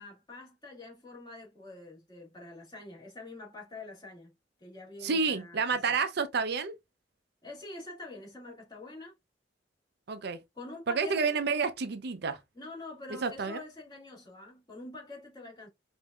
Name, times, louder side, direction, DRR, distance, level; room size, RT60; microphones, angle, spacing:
voice 1, 0.0-4.3 4.6-6.0 7.4-9.1 10.5-11.4 12.5-15.7, left 2 dB, 25° left, 2.0 m, -46 dB
voice 2, 5.0-6.7 10.1-10.4 10.9-12.4 13.2-13.6, right 5 dB, 60° right, 0.6 m, -29 dB
5.3 x 2.6 x 2.3 m
head